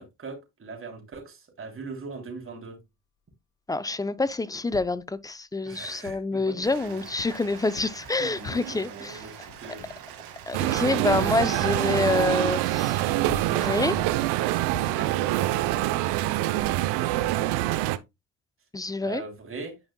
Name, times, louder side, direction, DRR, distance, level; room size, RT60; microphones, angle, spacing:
voice 1, 0.0-2.8 5.7-7.0 8.2-9.9 14.8-16.0 19.0-19.7, right 4 dB, 30° right, 3.1 m, -41 dB
voice 2, 3.7-9.2 10.5-13.1 13.5-14.0 18.7-19.2, left 3 dB, 10° left, 0.4 m, -27 dB
sound 1, 4.7-5.2 6.0-6.4 6.8-6.9 7.2-7.5 7.8-8.1 8.4-8.8 9.5-10.1 10.7-10.9 12.0-12.4 13.0-13.1 13.3-14.3 14.7-15.1, left 8 dB, 70° left, 1.0 m, -44 dB
Rain, 6.6-16.6, right 9 dB, 60° right, 1.9 m, -44 dB
sound 2, 10.5-18.0, right 16 dB, 75° right, 0.7 m, -25 dB
9.8 x 5.2 x 2.2 m
supercardioid pair, 95°, 40 cm